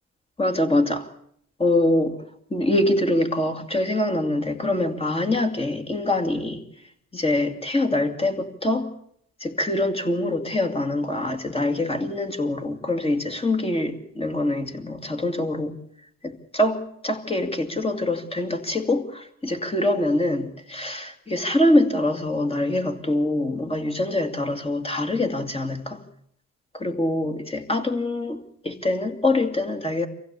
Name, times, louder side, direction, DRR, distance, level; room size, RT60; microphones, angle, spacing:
voice 1, 0.4-1.1 1.6-2.2 2.5-6.6 7.1-8.9 9.4-15.8 16.2-26.0 26.7-30.1, left 1 dB, 20° left, 5 dB, 2.5 m, -24 dB
24.0 x 15.5 x 8.3 m, 0.69 s
cardioid pair, 90°, 30 cm